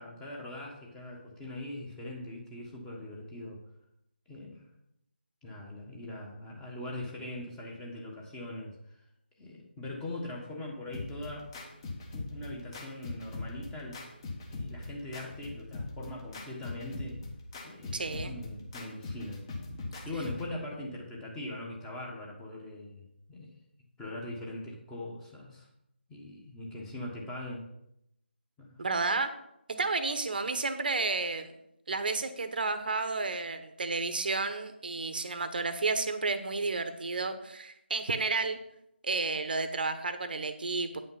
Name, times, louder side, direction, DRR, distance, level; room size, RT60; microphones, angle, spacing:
voice 1, 0.0-3.6 4.3-4.7 5.4-9.0 9.4-11.5 12.1-14.0 14.5-17.2 17.6-19.4 20.0-23.5 24.0-25.7 26.1-27.6 28.6-28.8, left 1 dB, 10° left, -2 dB, 1.4 m, -41 dB
sound 1, 10.9-20.5, left 2 dB, 25° left, 1.5 m, -41 dB
voice 2, 17.9-18.3 28.8-29.3 29.8-31.5 31.9-38.6 39.0-41.0, right 3 dB, 50° right, 9 dB, 1.0 m, -31 dB
9.0 x 5.7 x 5.6 m, 0.79 s
figure-of-eight pair, 155°, 6 cm